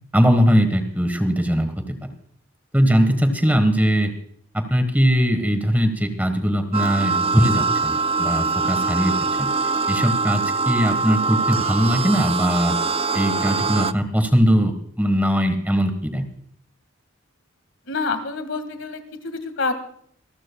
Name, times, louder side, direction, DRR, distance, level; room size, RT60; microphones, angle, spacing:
voice 1, 0.1-2.0 2.7-4.1 4.5-9.1 9.4-9.5 9.9-12.7 13.1-14.7 15.0-16.2, equal, 10° right, 7 dB, 1.3 m, -20 dB
sound 1, 6.7-13.9, right 4 dB, 25° right, 0.4 m, -23 dB
voice 2, 17.9-19.7, left 3 dB, 60° left, 9 dB, 1.8 m, -27 dB
26.5 x 14.0 x 2.3 m, 0.63 s
head